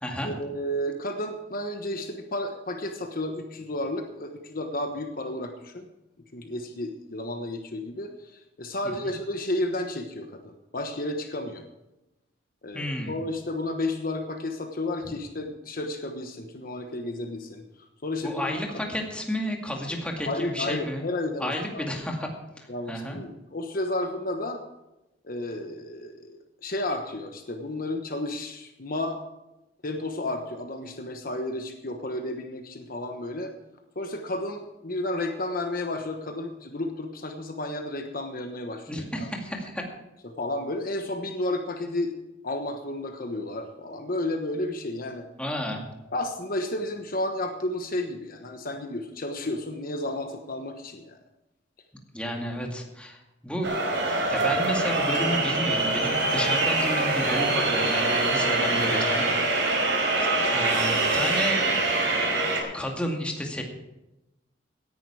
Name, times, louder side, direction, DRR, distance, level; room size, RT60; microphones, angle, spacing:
voice 1, 0.2-5.9 6.3-11.7 12.6-17.6 18.0-18.8 20.2-21.9 22.7-24.6 25.2-29.2 29.8-33.5 33.9-39.3 40.2-42.1 42.4-45.3 46.1-51.2 52.2-52.3 54.4-54.5, left 1 dB, 50° left, 5 dB, 1.2 m, -32 dB
voice 2, 12.7-13.2 18.2-21.1 21.4-22.3 22.6-23.2 38.9-39.9 45.4-45.8 52.1-53.2 53.4-53.8 54.3-59.3 59.5-59.7 60.5-61.6 62.7-63.6, equal, 5° left, 0 dB, 2.3 m, -31 dB
sound 1, 53.6-62.6, right 2 dB, 85° right, 4.3 m, -24 dB
17.5 x 10.5 x 4.8 m, 0.95 s
head